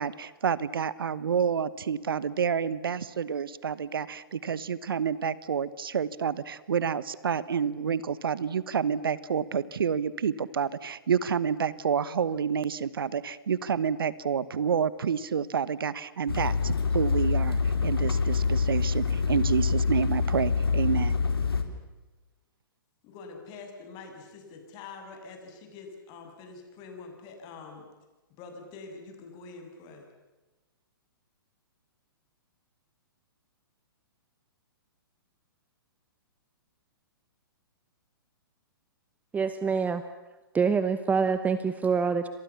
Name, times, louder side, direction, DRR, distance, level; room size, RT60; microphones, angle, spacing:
voice 1, 0.0-21.2, right 7 dB, 70° right, 18 dB, 1.2 m, -29 dB
sound 1, 16.3-21.6, left 5 dB, 80° left, 3.7 m, -26 dB
voice 2, 23.0-27.9 28.4-30.1, left 4 dB, 35° left, 4 dB, 7.2 m, -45 dB
voice 3, 39.3-40.0 40.5-42.3, right 5 dB, 10° right, 11 dB, 1.1 m, -26 dB
29.5 x 26.0 x 7.2 m, 1.2 s
figure-of-eight pair, 120°, 12 cm